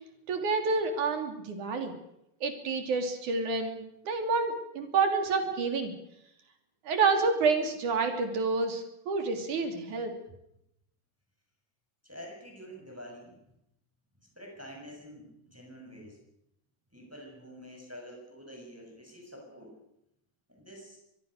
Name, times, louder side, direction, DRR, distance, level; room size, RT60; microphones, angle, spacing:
voice 1, 0.3-1.9 2.4-5.9 6.9-10.1, right 4 dB, 85° right, 6 dB, 4.5 m, -28 dB
voice 2, 12.0-13.4 14.4-16.2 16.9-19.7 20.5-21.0, equal, 5° right, 0 dB, 7.2 m, -47 dB
24.5 x 21.5 x 6.6 m, 0.79 s
omnidirectional pair, 3.4 m